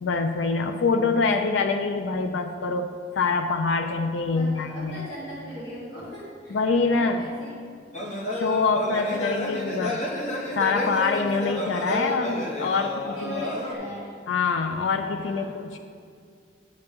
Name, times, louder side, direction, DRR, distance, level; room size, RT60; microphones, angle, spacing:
voice 1, 0.0-2.9 3.2-5.0 6.5-7.2 8.3-10.1 10.5-12.9 13.2-13.5 14.3-15.8, left 4 dB, 90° left, 6 dB, 0.4 m, -25 dB
voice 2, 4.3-7.8 12.7-14.1 15.2-15.7, equal, 55° left, -9 dB, 2.0 m, -40 dB
sound 1, 7.9-13.7, left 1 dB, 40° left, 0.8 m, -31 dB
9.3 x 6.8 x 3.5 m, 2.2 s
head